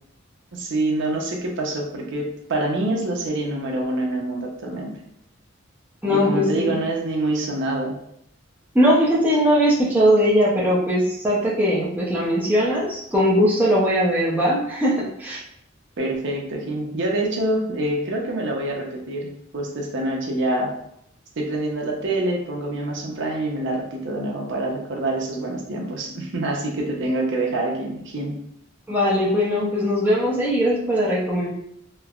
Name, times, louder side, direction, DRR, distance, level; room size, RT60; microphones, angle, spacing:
voice 1, 0.5-4.9 6.1-8.0 16.0-20.7 21.4-28.4, right 2 dB, 65° right, -1 dB, 0.6 m, -26 dB
voice 2, 6.0-6.8 8.7-15.4 28.9-31.5, equal, 10° right, -7 dB, 0.5 m, -20 dB
3.1 x 2.0 x 2.3 m, 0.73 s
head